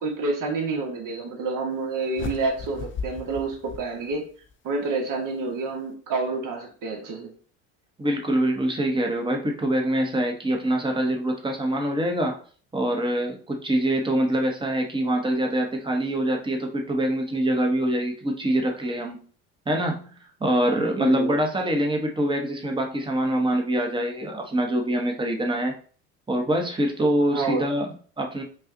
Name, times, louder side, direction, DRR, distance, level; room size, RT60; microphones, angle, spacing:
voice 1, 0.0-4.3 4.6-7.3 21.0-21.4 27.3-27.6, right 3 dB, 50° right, 2 dB, 1.3 m, -28 dB
sound 1, 2.1-4.5, left 4 dB, 30° left, 0.7 m, -36 dB
voice 2, 8.0-12.4 12.7-19.2 19.7-20.1 20.4-25.7 26.3-28.4, right 1 dB, 10° right, 2 dB, 1.0 m, -24 dB
5.5 x 2.4 x 2.7 m, 0.43 s
supercardioid pair, 80°, 41 cm